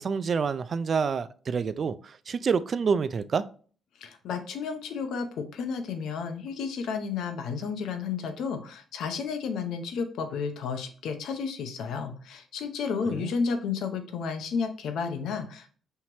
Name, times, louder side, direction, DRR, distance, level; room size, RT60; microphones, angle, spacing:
voice 1, 0.0-3.5 13.1-13.3, right 5 dB, 45° right, 0.3 m, -28 dB
voice 2, 4.0-15.7, left 5 dB, 80° left, 0.7 m, -32 dB
5.6 x 3.1 x 2.9 m
cardioid pair, 90°, 0 cm